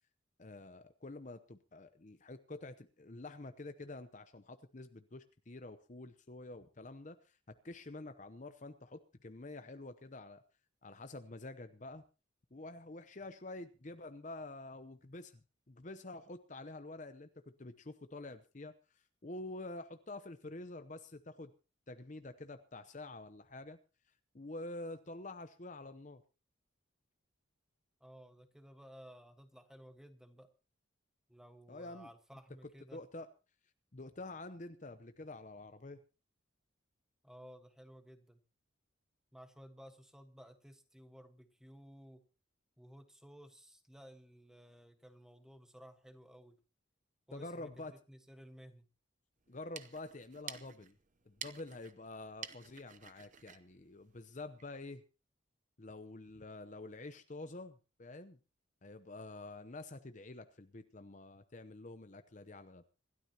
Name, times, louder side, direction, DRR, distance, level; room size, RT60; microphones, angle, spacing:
voice 1, 0.4-10.4 10.8-12.0 12.5-15.4 15.7-18.7 19.2-21.5 21.9-23.8 24.3-26.2 31.7-32.1 32.9-33.3 33.9-36.0 47.3-47.9 49.5-50.9 51.3-55.0 55.8-58.4 58.8-62.8, left 2 dB, 40° left, 9 dB, 0.8 m, -48 dB
voice 2, 28.0-30.5 31.3-33.0 37.2-38.4 39.3-42.2 42.8-46.6 47.3-48.9, equal, 5° right, 7 dB, 1.4 m, -56 dB
sound 1, 49.5-54.8, right 8 dB, 40° right, 0.8 m, -51 dB
26.0 x 12.5 x 2.9 m, 0.32 s
head